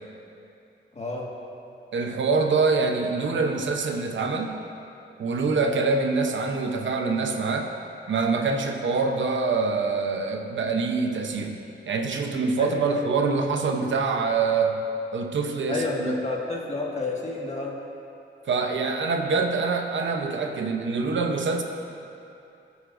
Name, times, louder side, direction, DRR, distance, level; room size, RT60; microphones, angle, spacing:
voice 1, 0.9-1.3 12.6-12.8 15.7-17.8, left 2 dB, 35° left, -3 dB, 1.7 m, -30 dB
voice 2, 1.9-4.6 5.2-7.7 8.1-14.8 15.1-16.2 18.5-21.6, right 4 dB, 75° right, 4 dB, 0.8 m, -25 dB
18.0 x 8.1 x 2.6 m, 2.6 s
wide cardioid pair, 100°, 20 cm